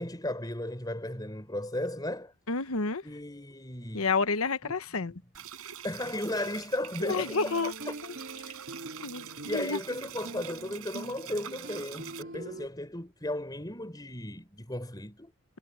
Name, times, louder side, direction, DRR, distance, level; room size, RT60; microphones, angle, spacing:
voice 1, 0.0-2.3 3.0-4.1 4.6-5.1 5.8-7.9 9.5-15.3, left 1 dB, 20° left, 4.9 m, -35 dB
voice 2, 2.5-3.0 3.9-5.1 7.0-7.7 8.0-8.1 9.0-9.8, left 4 dB, 75° left, 1.0 m, -30 dB
sound 1, 5.3-12.2, right 10 dB, 80° right, 4.4 m, -45 dB
sound 2, 7.0-12.7, right 1 dB, 55° right, 3.4 m, -44 dB
head